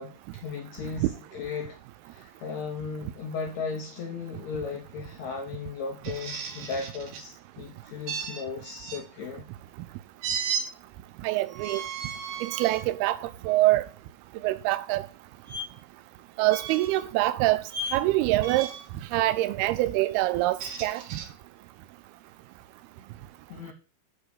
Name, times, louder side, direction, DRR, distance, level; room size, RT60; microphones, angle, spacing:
voice 1, 0.0-1.8 2.0-9.4 23.5-23.7, left 5 dB, 75° left, 1.7 m, -36 dB
sound 1, 6.0-7.2 8.1-9.0 10.2-10.7 11.5-12.8 13.5-13.7 15.5-15.6 16.5-17.0 17.7-18.0 18.4-18.9 20.3-21.3, right 5 dB, 65° right, 2.3 m, -35 dB
voice 2, 11.2-11.8 12.4-13.8 14.4-15.0 16.4-17.6 17.9-18.7 19.1-21.2, right 17 dB, 85° right, 2.6 m, -25 dB
6.1 x 5.0 x 6.7 m
omnidirectional pair, 4.4 m